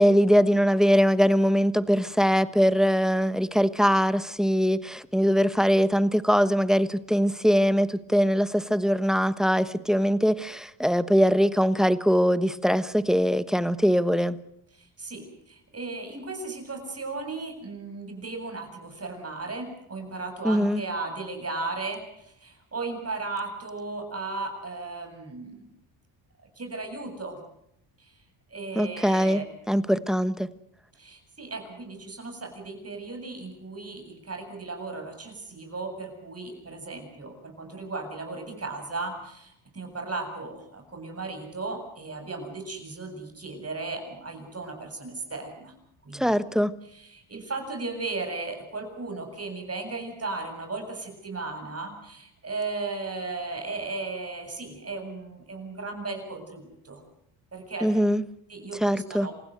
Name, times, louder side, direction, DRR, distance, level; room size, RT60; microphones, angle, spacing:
voice 1, 0.0-14.4 20.4-20.8 28.7-30.5 46.1-46.7 57.8-58.2 58.8-59.3, equal, ahead, 14 dB, 1.2 m, -22 dB
voice 2, 14.7-25.7 26.6-27.4 28.0-28.2 28.5-29.4 31.0-45.7 46.0-46.3 46.8-57.0 57.5-57.9 58.5-59.3, right 3 dB, 30° right, 4 dB, 8.0 m, -36 dB
28.0 x 16.0 x 8.0 m, 0.74 s
cardioid pair, 80°, 49 cm